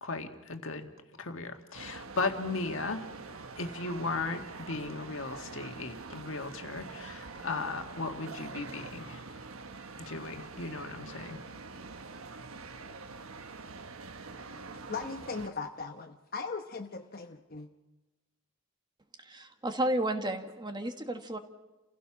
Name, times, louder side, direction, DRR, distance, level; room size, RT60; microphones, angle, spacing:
voice 1, 0.0-0.9 1.2-3.1 3.6-9.2 10.1-11.4, left 3 dB, 65° left, 5 dB, 1.9 m, -36 dB
sound 1, 1.7-15.5, right 4 dB, 75° right, 1.2 m, -45 dB
voice 2, 14.9-17.7, left 4 dB, 45° left, 5 dB, 1.0 m, -38 dB
voice 3, 19.2-21.4, right 1 dB, 20° right, 7 dB, 1.5 m, -32 dB
29.5 x 16.0 x 6.1 m, 1.1 s
head